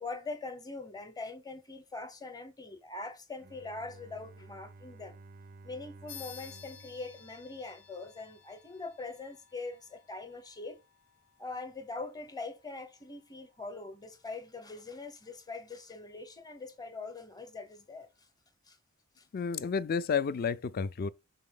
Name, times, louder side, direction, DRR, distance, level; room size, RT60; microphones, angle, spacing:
voice 1, 0.0-5.2 5.6-10.8 11.4-18.3 18.7-18.8 19.2-19.3, left 3 dB, 15° left, 0.8 m, -42 dB
Bowed string instrument, 3.4-8.4, right 3 dB, 40° right, 0.4 m, -54 dB
sound 1, 6.1-16.0, left 9 dB, 75° left, 0.7 m, -56 dB
voice 2, 19.3-21.1, left 6 dB, 40° left, 0.4 m, -31 dB
6.2 x 4.2 x 3.7 m
head